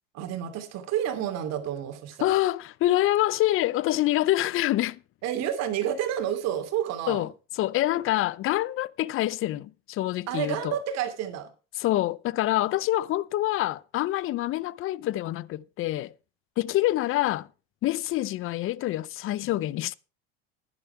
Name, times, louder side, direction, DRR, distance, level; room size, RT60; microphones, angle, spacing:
voice 1, 0.1-2.3 5.2-7.3 10.3-11.5, right 10 dB, 55° right, 2.8 m, -30 dB
voice 2, 2.2-5.0 7.1-7.3 7.5-10.7 11.8-16.1 16.6-17.5 17.8-19.9, left 15 dB, 45° left, 0.6 m, -26 dB
11.5 x 10.5 x 4.5 m
supercardioid pair, 95°, 31 cm